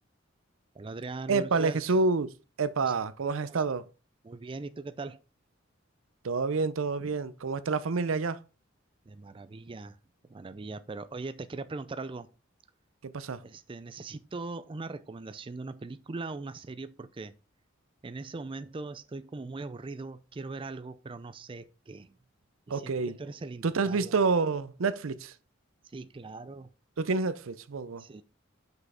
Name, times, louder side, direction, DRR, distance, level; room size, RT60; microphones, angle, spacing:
voice 1, 0.7-1.9 2.8-2.9 3.4-3.6 4.2-5.2 7.0-7.1 9.1-10.0 10.3-12.3 13.4-17.3 18.0-22.2 22.7-24.1 25.9-26.7 28.0-28.2, right 3 dB, 25° right, 0.4 m, -40 dB
voice 2, 1.3-2.3 2.6-3.8 6.2-8.4 13.0-13.4 22.7-23.1 23.6-25.3 27.0-28.0, right 4 dB, 80° right, 0.6 m, -28 dB
6.1 x 5.5 x 4.9 m
head